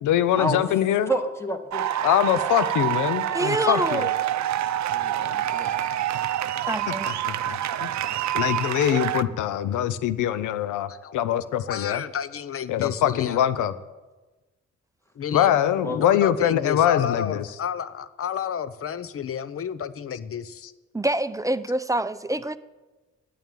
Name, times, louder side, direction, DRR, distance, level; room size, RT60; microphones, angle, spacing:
voice 1, 0.0-1.1 2.0-4.1 6.9-7.9 8.3-12.0 12.7-13.7 15.3-17.4, left 11 dB, 90° left, 0.6 m, -23 dB
voice 2, 1.1-2.1 4.9-5.8 15.8-16.0, right 1 dB, 10° left, 1.9 m, -30 dB
sound 1, 1.7-9.2, right 12 dB, 65° right, 0.6 m, -27 dB
voice 3, 3.3-4.1 6.7-7.1 8.1-8.2 20.9-22.6, right 1 dB, 10° right, 0.6 m, -26 dB
voice 4, 11.7-13.4 15.2-20.7, left 8 dB, 50° left, 0.7 m, -31 dB
9.1 x 9.0 x 9.0 m
cardioid pair, 60°, 30 cm